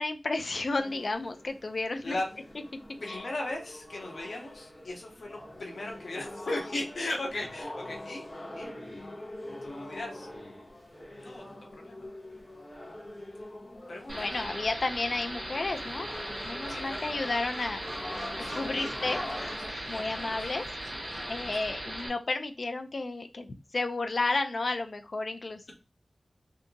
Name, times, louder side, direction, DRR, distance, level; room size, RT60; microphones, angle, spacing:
voice 1, 0.0-2.2 3.1-3.2 14.1-16.1 16.4-17.8 18.4-19.2 19.9-20.6 21.3-25.7, left 3 dB, 60° left, 7 dB, 0.4 m, -32 dB
sound 1, 0.8-19.7, left 1 dB, 40° left, 1.2 m, -44 dB
voice 2, 2.0-2.4 3.0-8.3 8.6-8.7 9.6-10.3 11.2-11.4 11.7-12.1 13.9-14.5 16.7-17.3 18.4-20.4 21.0-22.1, left 2 dB, 85° left, 0 dB, 1.0 m, -38 dB
sound 2, 14.1-22.1, right 1 dB, 45° right, 1.8 m, -38 dB
Gull seagull, 15.7-21.5, equal, 5° left, 1.8 m, -46 dB
3.5 x 2.8 x 2.6 m, 0.28 s
wide cardioid pair, 90°, 0 cm